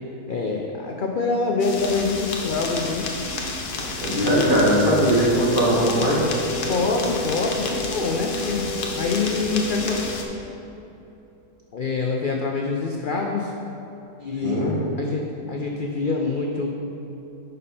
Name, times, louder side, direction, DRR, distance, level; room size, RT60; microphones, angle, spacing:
voice 1, 0.3-3.0 4.1-4.6 5.8-6.1 6.7-10.0 11.7-13.5 14.2-14.7 15.0-16.7, left 4 dB, 60° left, 0 dB, 0.5 m, -25 dB
sound 1, 1.6-10.2, left 3 dB, 85° left, 1.5 m, -31 dB
voice 2, 3.8-6.2 14.4-14.7, right 1 dB, 35° right, -5 dB, 1.6 m, -20 dB
Wind instrument woodwind instrument, 4.0-10.6, left 1 dB, 60° right, 0.7 m, -32 dB
11.0 x 5.4 x 4.2 m, 2.9 s
omnidirectional pair, 1.6 m